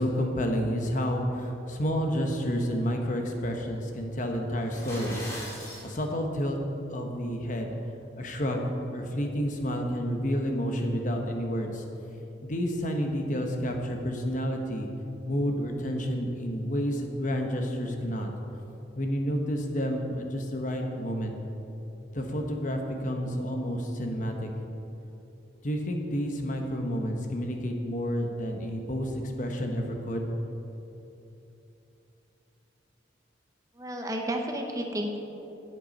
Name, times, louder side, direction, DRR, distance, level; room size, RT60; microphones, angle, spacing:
voice 1, 0.0-5.3 5.8-6.6 6.9-7.8 8.2-8.6 8.9-11.8 12.4-14.9 15.3-18.3 19.0-21.3 22.1-24.5 25.6-30.3, equal, 45° left, 2 dB, 1.0 m, -30 dB
sound 1, 4.6-5.9, equal, 15° left, 2.4 m, -39 dB
voice 2, 33.8-35.2, equal, 20° right, 3 dB, 0.7 m, -31 dB
10.5 x 8.0 x 5.3 m, 3.0 s
head